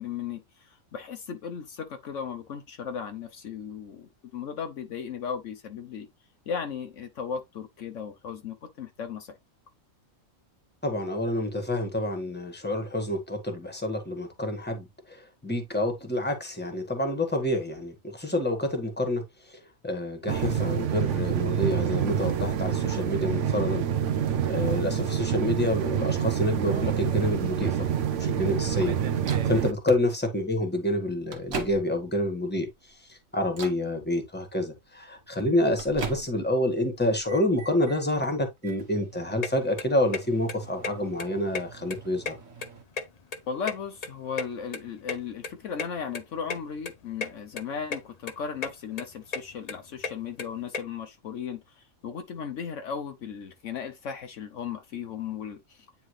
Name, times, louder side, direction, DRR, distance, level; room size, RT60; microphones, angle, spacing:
voice 1, 0.0-6.1 6.5-9.4 43.5-55.9, left 7 dB, 70° left, 1.1 m, -36 dB
voice 2, 10.8-19.2 19.8-23.8 24.5-27.7 28.2-28.9 29.5-32.7 33.1-42.4, left 1 dB, 10° left, 1.5 m, -28 dB
sound 1, 20.3-29.7, right 9 dB, 70° right, 1.0 m, -27 dB
Microwave oven, 29.2-29.6 30.5-30.6 31.1-32.2 32.7-33.0 33.5-33.9 35.1-36.6 37.0-38.0 38.6-42.8, right 5 dB, 90° right, 1.7 m, -42 dB
sound 2, 39.4-39.5 39.8-40.2 40.5-40.6 40.8-40.9 41.2-42.0 42.2-43.4 43.7-45.2 45.4-45.5 45.8-45.9 46.1-46.2 46.5-46.6 46.9-47.3 47.6-48.0 48.3-48.7 49.0-50.8, left 4 dB, 35° left, 0.7 m, -33 dB
9.4 x 3.5 x 3.2 m
omnidirectional pair, 1.4 m